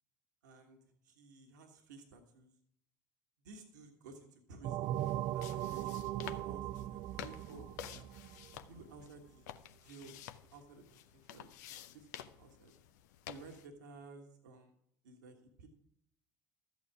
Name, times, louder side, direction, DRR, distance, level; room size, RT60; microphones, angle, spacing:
voice 1, 0.4-2.5 3.4-5.0 5.3-5.9 6.2-8.2 8.7-9.5 9.8-10.1 10.5-12.7 13.3-14.8 15.0-15.7, right 3 dB, 75° right, 3 dB, 1.5 m, -55 dB
sound 1, 4.6-9.0, right 13 dB, 50° right, 0.4 m, -39 dB
sound 2, 4.8-13.7, left 11 dB, 70° left, 0.6 m, -51 dB
13.0 x 8.6 x 4.8 m, 0.71 s
figure-of-eight pair, 65°, 10 cm